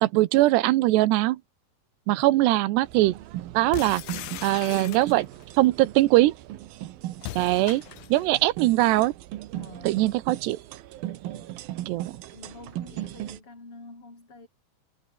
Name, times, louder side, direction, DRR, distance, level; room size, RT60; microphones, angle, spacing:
voice 1, 0.0-1.4 2.1-3.2 3.5-4.0 4.4-5.2 5.6-6.3 7.4-7.8 8.1-9.1 9.9-10.6 11.9-12.1, right 17 dB, 90° right, 3.1 m, -21 dB
sound 1, 2.8-13.4, right 14 dB, 70° right, 2.8 m, -38 dB
sound 2, 3.7-5.4 7.2-8.3, left 15 dB, 75° left, 3.0 m, -39 dB
voice 2, 4.5-5.3 7.2-7.5 8.0-8.3 9.5-10.0 11.3-11.6 12.3-14.5, left 3 dB, 30° left, 8.7 m, -47 dB
omnidirectional pair, 4.7 m